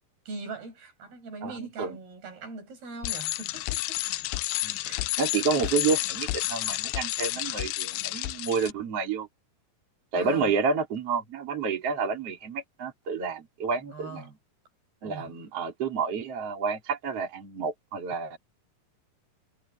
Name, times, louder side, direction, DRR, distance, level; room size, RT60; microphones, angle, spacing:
voice 1, 0.3-4.0 4.8-5.1 5.6-5.8 10.1-10.5 13.9-14.3 15.0-15.3, right 3 dB, 70° right, 7.8 m, -41 dB
voice 2, 1.4-2.0 4.6-4.8 5.2-9.3 10.1-14.3 15.0-18.4, right 5 dB, 40° right, 4.4 m, -29 dB
Bicycle, 3.0-8.7, left 18 dB, 85° left, 2.5 m, -31 dB
omnidirectional pair, 4.6 m